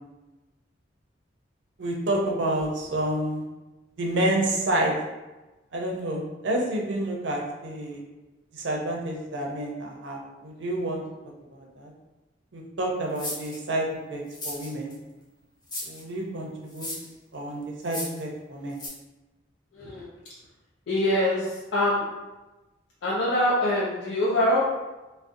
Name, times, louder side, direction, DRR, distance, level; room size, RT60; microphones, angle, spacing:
voice 1, 1.8-3.5 4.0-4.9 5.7-8.0 8.5-11.0 11.5-11.9 12.5-14.9 15.8-16.9 17.3-18.8, right 1 dB, 85° right, -1 dB, 0.5 m, -29 dB
sound 1, 13.2-13.6 14.3-14.9 15.7-16.0 16.7-17.1 17.8-18.2 18.8-18.9, left 1 dB, 25° left, 0.6 m, -35 dB
voice 2, 19.7-20.1 20.9-22.0 23.0-24.7, left 1 dB, 80° left, -6 dB, 0.4 m, -24 dB
2.4 x 2.0 x 2.5 m, 1.1 s
head